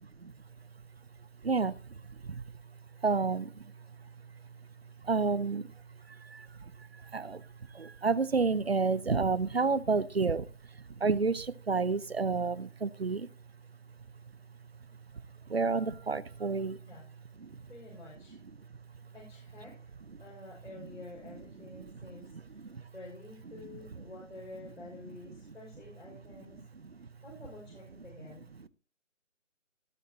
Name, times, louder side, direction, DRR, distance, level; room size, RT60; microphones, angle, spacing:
voice 1, 1.4-2.6 3.0-4.4 5.0-13.3 15.1-16.8 17.4-17.6 19.0-19.1 22.6-22.9 25.5-25.6, right 4 dB, 55° right, 20 dB, 0.6 m, -31 dB
voice 2, 17.6-18.4 19.1-26.6 27.2-28.5, left 2 dB, 70° left, -3 dB, 5.8 m, -50 dB
18.0 x 7.8 x 2.8 m, 0.39 s
figure-of-eight pair, 180°, 38 cm